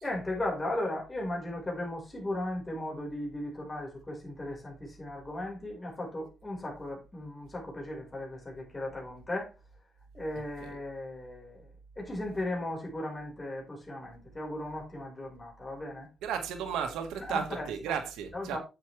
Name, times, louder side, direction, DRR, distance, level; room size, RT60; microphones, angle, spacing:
voice 1, 0.0-9.5 10.1-11.6 12.0-16.1 17.2-17.9 18.3-18.6, left 1 dB, 20° left, 4.9 m, -36 dB
voice 2, 10.4-10.8 16.2-18.6, right 8 dB, 90° right, 1.7 m, -34 dB
9.8 x 7.4 x 3.4 m
cardioid pair, 90°, 0 cm